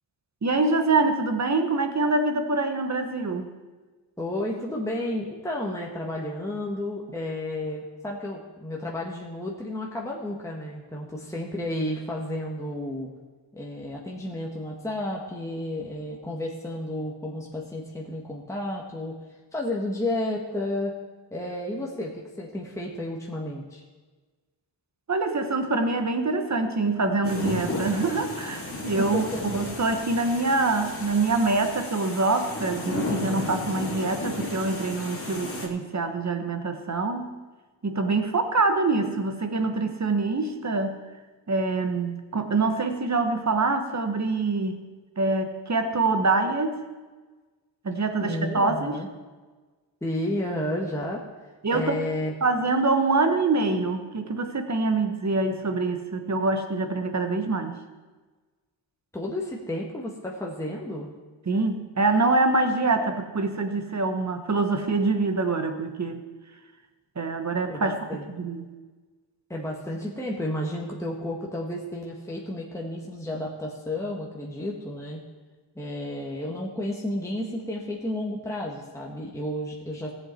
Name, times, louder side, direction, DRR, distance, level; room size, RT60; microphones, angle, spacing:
voice 1, 0.4-3.5 25.1-37.4 37.8-41.0 41.5-44.8 45.2-46.8 47.8-49.0 51.6-52.0 52.4-57.8 61.5-66.3 67.1-68.0 68.4-68.7, right 3 dB, 40° right, 7 dB, 1.3 m, -25 dB
voice 2, 4.2-13.1 13.5-19.2 19.5-21.0 21.3-23.8 29.1-29.4 48.2-49.1 50.0-51.2 51.7-52.3 59.1-61.1 67.7-68.2 69.5-75.2 75.7-80.1, left 1 dB, 5° left, -3 dB, 1.5 m, -32 dB
sound 1, 27.2-35.7, left 2 dB, 30° left, 2.2 m, -33 dB
17.5 x 7.8 x 4.4 m, 1.3 s
wide cardioid pair, 105°, 44 cm